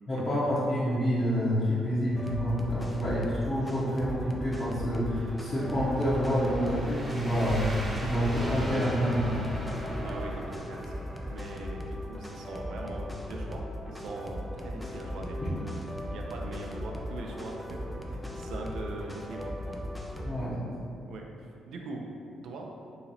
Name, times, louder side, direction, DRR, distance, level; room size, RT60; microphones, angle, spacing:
voice 1, 0.1-9.3 20.2-20.7, equal, 35° left, -11 dB, 0.8 m, -28 dB
sound 1, 2.2-20.4, left 1 dB, 5° left, 0.4 m, -38 dB
sound 2, 5.0-11.7, right 1 dB, 15° right, 0.9 m, -37 dB
voice 2, 10.0-11.0 11.3-15.8 16.1-19.5 20.9-21.3 21.7-22.1 22.4-22.7, right 2 dB, 75° right, 1 dB, 0.4 m, -41 dB
2.8 x 2.8 x 4.0 m, 2.4 s
cardioid pair, 90°, 0 cm